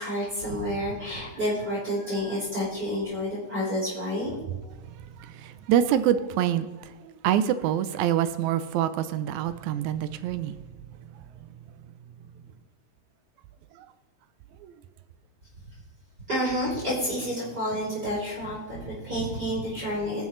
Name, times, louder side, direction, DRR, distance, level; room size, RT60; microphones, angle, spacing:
voice 1, 0.0-4.4 16.3-20.2, equal, 35° right, -8 dB, 3.8 m, -29 dB
voice 2, 4.9-10.6 13.8-13.9 14.6-14.7 19.0-19.1, right 10 dB, 80° right, 13 dB, 1.9 m, -26 dB
19.5 x 6.7 x 3.2 m, 1.2 s
omnidirectional pair, 3.3 m